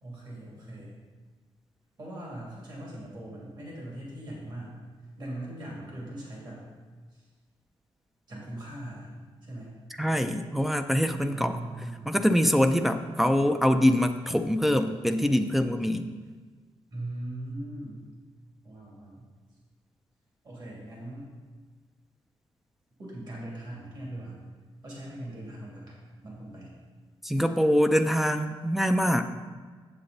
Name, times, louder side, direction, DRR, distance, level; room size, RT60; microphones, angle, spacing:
voice 1, 0.0-1.0 2.0-4.8 5.2-6.6 7.1-7.2 8.3-9.2 9.4-9.7 11.3-12.4 16.9-18.1 18.6-19.3 20.4-21.3 23.0-24.4 24.8-26.0 26.2-26.7, right 1 dB, 45° right, -4 dB, 2.8 m, -40 dB
voice 2, 10.0-11.6 12.1-16.1 27.2-29.2, equal, ahead, 5 dB, 0.4 m, -24 dB
8.1 x 7.7 x 4.1 m, 1.5 s
wide cardioid pair, 130°, 10 cm